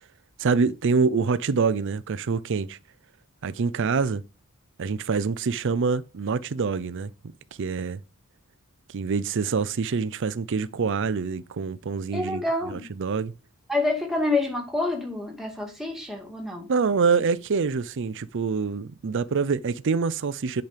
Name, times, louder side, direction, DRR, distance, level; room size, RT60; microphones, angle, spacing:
voice 1, 0.4-2.8 3.4-4.2 4.8-7.1 7.6-8.0 8.9-12.4 12.7-13.3 16.7-20.6, right 5 dB, 60° right, 0.5 m, -25 dB
voice 2, 12.1-12.9 13.7-16.7, left 2 dB, ahead, 2.2 m, -27 dB
8.1 x 5.2 x 5.1 m
head